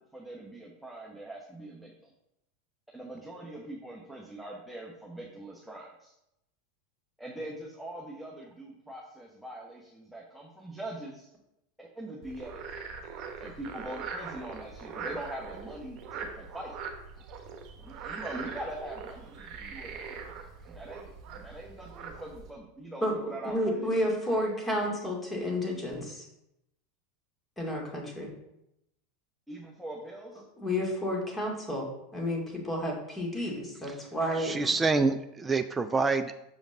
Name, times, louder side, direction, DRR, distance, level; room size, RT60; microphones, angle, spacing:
voice 1, 0.0-2.1 2.9-6.1 7.2-11.3 11.8-12.6 13.4-16.7 17.8-20.3 20.7-24.5 29.5-30.4, right 1 dB, ahead, -3 dB, 1.1 m, -43 dB
Frog, 12.2-22.5, right 5 dB, 45° right, 1.1 m, -42 dB
voice 2, 23.0-26.2 27.6-28.3 30.6-31.9 32.1-34.6, left 1 dB, 15° left, -1 dB, 2.4 m, -31 dB
voice 3, 34.4-36.4, right 4 dB, 15° right, 8 dB, 0.4 m, -27 dB
6.4 x 5.1 x 3.8 m, 0.84 s
figure-of-eight pair, 85°, 0 cm